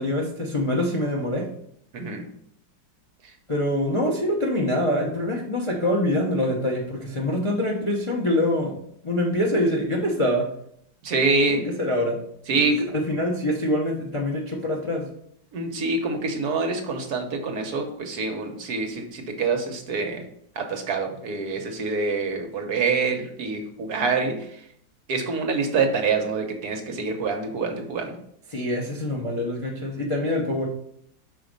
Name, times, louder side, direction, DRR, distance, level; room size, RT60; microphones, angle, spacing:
voice 1, 0.0-1.5 3.5-8.7 9.0-10.5 11.5-12.2 12.5-15.1 28.5-30.7, left 1 dB, 35° left, -1 dB, 0.5 m, -25 dB
voice 2, 1.9-2.2 3.2-3.3 11.0-11.6 12.5-12.9 15.5-20.2 20.5-24.7 25.1-28.2, right 4 dB, 60° right, 4 dB, 1.3 m, -26 dB
5.7 x 4.1 x 5.2 m, 0.69 s
omnidirectional pair, 2.0 m